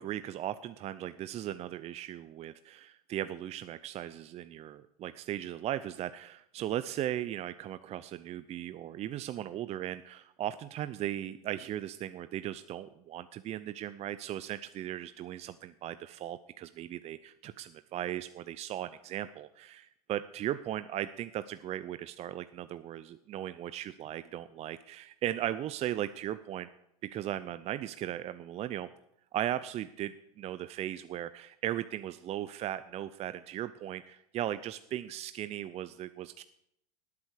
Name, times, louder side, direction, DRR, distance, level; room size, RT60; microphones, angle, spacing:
voice 1, 0.0-26.7 27.0-28.9 29.3-36.4, right 12 dB, 35° right, 13 dB, 0.6 m, -37 dB
18.5 x 8.5 x 6.4 m, 0.75 s
hypercardioid pair, 95°, 20 cm